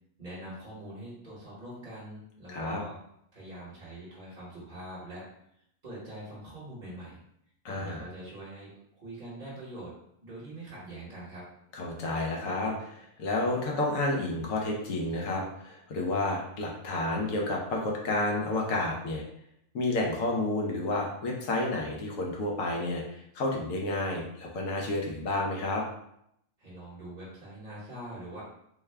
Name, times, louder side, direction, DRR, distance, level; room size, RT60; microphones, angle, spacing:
voice 1, 0.2-3.0 3.3-5.3 5.8-7.2 7.7-9.9 10.2-11.5 26.6-28.4, right 1 dB, 35° right, -9 dB, 1.1 m, -43 dB
voice 2, 2.5-2.8 7.6-8.0 11.7-19.2 19.7-25.8, left 2 dB, 65° left, -1 dB, 1.0 m, -30 dB
3.5 x 2.2 x 3.3 m, 0.74 s
omnidirectional pair, 1.6 m